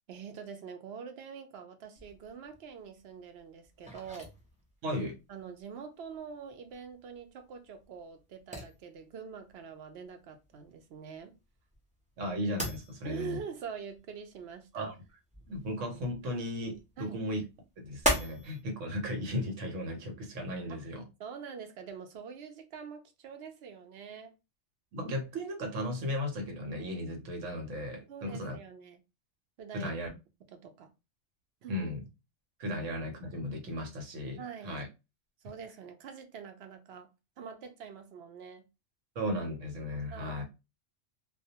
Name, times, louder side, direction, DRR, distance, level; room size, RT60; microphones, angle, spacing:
voice 1, 0.1-4.3 5.3-11.3 13.0-14.9 17.0-17.2 20.7-24.4 28.1-29.0 29.6-29.9 30.5-30.9 31.6-31.8 34.4-34.8 35.4-37.1 37.4-38.7 40.1-40.4, right 6 dB, 65° right, 0.8 m, -45 dB
sound 1, 1.9-18.6, equal, 10° right, 0.4 m, -40 dB
voice 2, 4.8-5.2 12.2-13.4 14.7-14.9 15.5-17.5 17.8-21.1 24.9-28.6 29.7-30.1 31.7-32.0 32.6-34.9 39.1-40.4, left 1 dB, 90° right, 1.1 m, -36 dB
2.3 x 2.2 x 2.7 m
omnidirectional pair, 1.2 m